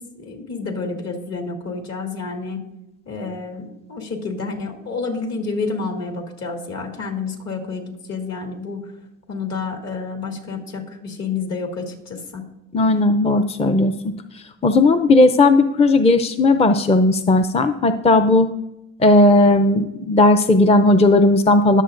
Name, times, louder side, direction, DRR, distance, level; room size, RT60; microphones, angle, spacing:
voice 1, 0.0-2.6 3.1-8.8 9.3-12.4, left 4 dB, 60° left, 2 dB, 2.4 m, -29 dB
voice 2, 12.7-14.1 14.6-18.5 19.0-21.8, left 2 dB, 20° left, 8 dB, 0.5 m, -15 dB
20.5 x 7.2 x 2.5 m, 0.90 s
cardioid pair, 90°, 30 cm